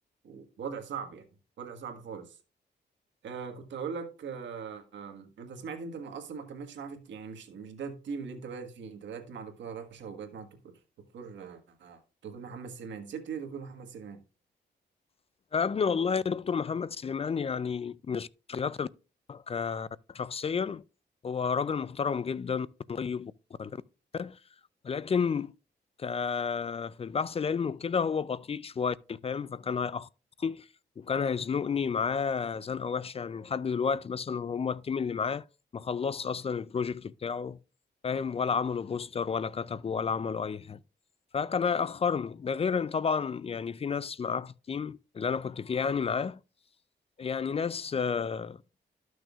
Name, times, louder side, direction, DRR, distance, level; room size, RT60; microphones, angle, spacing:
voice 1, 0.2-1.2 1.6-2.4 3.2-10.5 11.1-14.2, right 6 dB, 90° right, 1.5 m, -40 dB
voice 2, 15.5-18.9 19.3-20.8 21.2-23.3 23.6-23.8 24.1-24.4 24.8-25.5 26.0-30.1 30.4-30.7 31.0-35.4 35.7-37.6 38.0-40.8 41.3-46.4 47.2-48.6, left 6 dB, 35° left, 0.3 m, -31 dB
13.5 x 6.2 x 2.4 m
cardioid pair, 85°, 19 cm